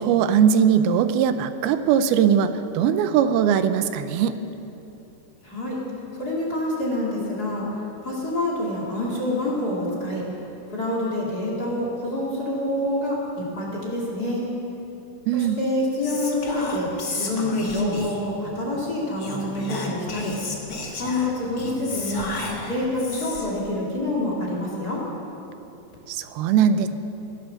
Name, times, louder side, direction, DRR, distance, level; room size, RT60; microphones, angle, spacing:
voice 1, 0.0-4.3 15.3-15.6 26.1-26.9, right 8 dB, 85° right, 10 dB, 2.6 m, -20 dB
voice 2, 5.4-5.8 6.1-7.7 8.0-10.2 10.7-14.5 15.3-20.4 21.0-22.3 22.6-25.0, left 1 dB, 30° left, -4 dB, 2.6 m, -27 dB
Whispering, 16.0-18.3 19.2-23.6, left 3 dB, 50° left, 1.1 m, -32 dB
18.5 x 11.5 x 6.5 m, 3.0 s
omnidirectional pair, 4.3 m